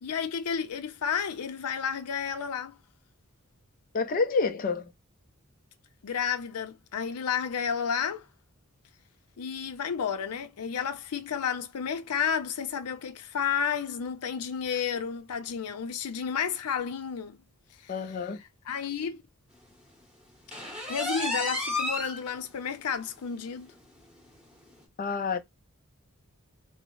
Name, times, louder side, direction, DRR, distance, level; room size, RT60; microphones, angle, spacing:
voice 1, 0.0-2.8 6.0-8.3 9.4-17.4 17.8-17.9 18.7-19.2 20.9-23.7, left 7 dB, 90° left, 0.5 m, -31 dB
voice 2, 3.9-4.9 17.9-18.4 25.0-25.4, left 4 dB, 40° left, 0.4 m, -28 dB
sound 1, 20.5-22.2 22.7-22.8 23.2-23.3 23.7-23.8 24.7-24.8, left 1 dB, 5° right, 0.9 m, -31 dB
3.5 x 2.0 x 3.0 m
head